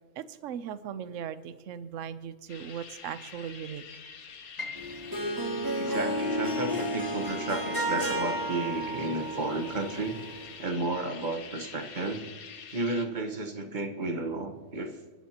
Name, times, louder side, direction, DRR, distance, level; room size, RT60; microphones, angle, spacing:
voice 1, 0.2-3.8, right 8 dB, 70° right, 14 dB, 1.0 m, -38 dB
sound 1, 2.5-13.1, left 6 dB, 85° left, 1.5 m, -47 dB
Piano, 4.6-10.5 10.8-12.0 12.4-12.5 13.2-13.5, left 3 dB, 30° left, 1.7 m, -48 dB
Harp, 4.8-10.5, equal, 15° right, 2.1 m, -32 dB
voice 2, 5.8-10.2 10.6-12.2 12.7-15.0, right 2 dB, 35° right, 5 dB, 1.3 m, -32 dB
27.5 x 12.0 x 2.9 m, 1.4 s
omnidirectional pair, 1.5 m